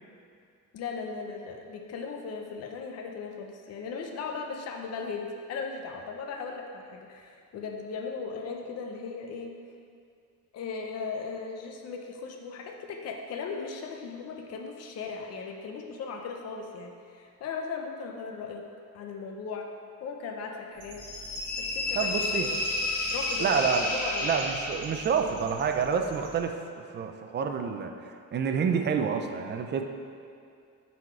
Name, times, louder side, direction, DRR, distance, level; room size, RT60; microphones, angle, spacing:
voice 1, 0.7-9.5 10.5-18.6 18.9-19.7 20.0-21.0 21.6-22.1 22.4-22.6 23.1-24.3, left 5 dB, 50° left, 2 dB, 0.6 m, -37 dB
sound 1, 20.8-26.4, right 2 dB, 70° right, 1.1 m, -47 dB
sound 2, 21.0-25.2, left 2 dB, 70° left, 1.3 m, -31 dB
voice 2, 22.0-22.5 23.4-23.9 24.2-29.8, right 6 dB, 35° right, 5 dB, 0.4 m, -28 dB
9.4 x 4.2 x 4.4 m, 2.3 s
cardioid pair, 175°, 32 cm